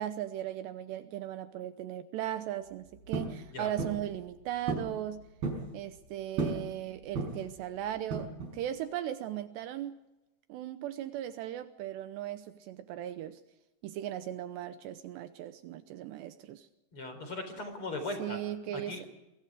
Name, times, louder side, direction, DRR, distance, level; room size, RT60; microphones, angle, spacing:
voice 1, 0.0-5.3 5.7-10.0 10.5-13.4 13.8-16.7 18.2-19.1, right 11 dB, 75° right, 11 dB, 2.9 m, -38 dB
sound 1, 3.1-3.4 3.8-4.1 4.7-4.9 5.2-5.7 6.4-6.7 7.1-7.5 8.1-8.6, right 3 dB, 55° right, 7.0 m, -33 dB
voice 2, 16.9-18.4 18.7-19.0, left 2 dB, 30° left, 7 dB, 4.6 m, -38 dB
27.0 x 23.5 x 4.9 m, 0.96 s
omnidirectional pair, 5.3 m